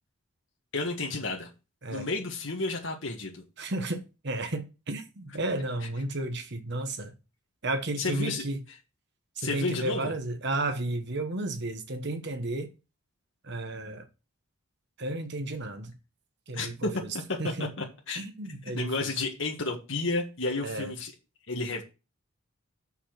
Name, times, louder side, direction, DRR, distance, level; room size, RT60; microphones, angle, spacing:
voice 1, 0.7-1.5 1.9-3.4 8.0-8.5 9.4-10.1 16.5-16.9 17.6-18.2 18.7-21.1 21.5-21.8, left 3 dB, 60° left, 1.7 m, -31 dB
voice 2, 3.6-7.1 7.6-8.6 9.4-12.7 13.4-14.1 15.0-15.9 16.5-17.1 17.4-17.7 18.2-19.1 20.6-20.9, right 2 dB, 55° right, 1.2 m, -33 dB
6.8 x 5.8 x 5.8 m
head